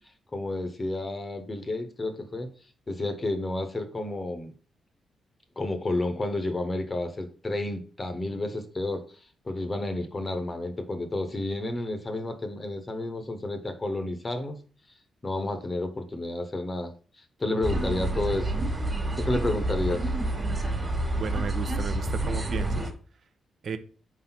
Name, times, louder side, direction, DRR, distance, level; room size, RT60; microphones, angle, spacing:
voice 1, 0.3-2.5 2.9-4.5 5.6-9.0 9.4-14.6 15.2-16.9 17.2-18.5 19.2-20.1, left 2 dB, 25° left, 7 dB, 0.9 m, -31 dB
sound 1, 17.6-22.9, right 2 dB, 20° right, 1.6 m, -28 dB
voice 2, 21.2-22.9 23.6-23.8, right 5 dB, 50° right, 11 dB, 0.7 m, -34 dB
5.0 x 4.0 x 5.9 m, 0.40 s
cardioid pair, 120°, 0 cm